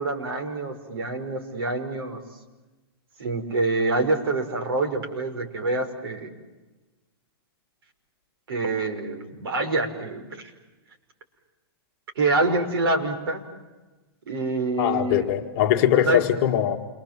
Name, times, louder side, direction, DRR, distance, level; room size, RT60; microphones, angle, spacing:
voice 1, 0.0-2.2 3.2-6.4 8.5-10.5 12.2-13.4 14.3-15.3 15.9-16.2, right 2 dB, 70° right, 4 dB, 5.5 m, -26 dB
voice 2, 14.8-16.8, left 11 dB, 30° left, 4 dB, 2.0 m, -21 dB
28.0 x 24.5 x 7.6 m, 1.1 s
hypercardioid pair, 170°, 13 cm